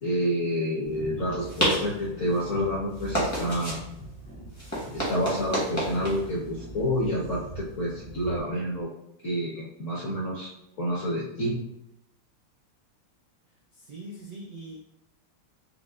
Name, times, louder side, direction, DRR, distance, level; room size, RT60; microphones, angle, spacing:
voice 1, 0.0-3.8 4.9-8.9 9.2-10.5 10.8-11.6, equal, 60° left, -6 dB, 0.8 m, -28 dB
sound 1, 0.8-8.4, right 1 dB, 20° left, 0.4 m, -33 dB
voice 2, 13.7-14.8, right 1 dB, 75° right, -3 dB, 0.8 m, -42 dB
5.3 x 2.1 x 2.4 m, 0.83 s
omnidirectional pair, 2.3 m